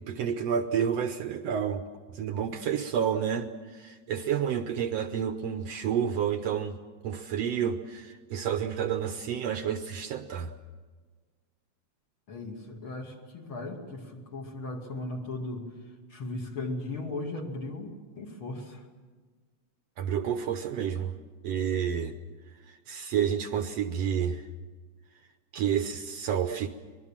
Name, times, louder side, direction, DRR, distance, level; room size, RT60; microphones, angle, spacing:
voice 1, 0.1-1.8 2.1-10.5 20.0-21.1 21.4-22.2 22.9-24.4 25.5-26.7, right 8 dB, 70° right, 8 dB, 1.8 m, -30 dB
voice 2, 12.3-15.6 16.1-18.9, left 2 dB, 45° left, 1 dB, 3.1 m, -37 dB
25.0 x 20.5 x 7.3 m, 1.4 s
omnidirectional pair, 3.4 m